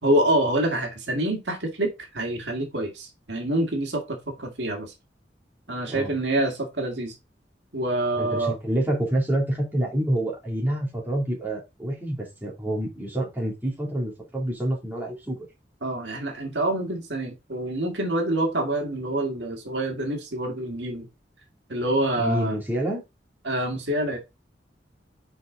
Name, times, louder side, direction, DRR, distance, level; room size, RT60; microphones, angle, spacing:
voice 1, 0.0-4.9 5.7-7.1 7.7-8.6 15.8-21.1 21.7-22.6 23.4-24.2, right 1 dB, 85° right, 1.9 m, -26 dB
voice 2, 8.2-15.4 22.2-23.0, right 1 dB, 10° right, 2.6 m, -27 dB
5.8 x 4.9 x 3.8 m
head